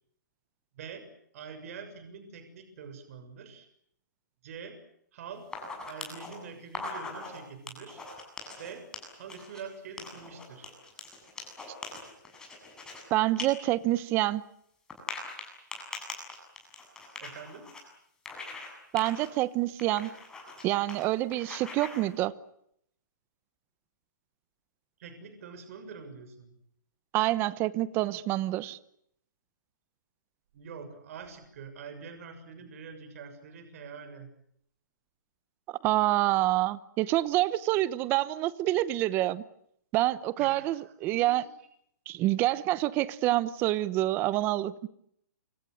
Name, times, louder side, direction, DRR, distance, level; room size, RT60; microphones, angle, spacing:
voice 1, 0.7-1.1 1.3-3.7 4.4-4.8 5.1-5.5 5.9-8.1 8.6-8.9 9.1-10.7 17.2-17.7 25.0-26.5 30.5-34.3 40.4-41.7, right 6 dB, 50° right, 9 dB, 6.8 m, -45 dB
sound 1, 5.4-6.3 6.7-7.4 7.7-9.6 10.0-13.0 13.4-13.5 13.8-13.9 14.9-17.8 18.3-18.7 19.0-19.3 19.8-20.6 20.9-21.0 21.3-22.0, left 3 dB, 5° left, 7.7 m, -41 dB
voice 2, 13.1-14.4 18.9-20.1 20.6-22.3 27.1-28.8 35.7-39.4 39.9-41.5 42.1-44.9, right 16 dB, 20° right, 18 dB, 1.0 m, -27 dB
28.5 x 26.0 x 6.6 m, 0.71 s
hypercardioid pair, 160°, 10 cm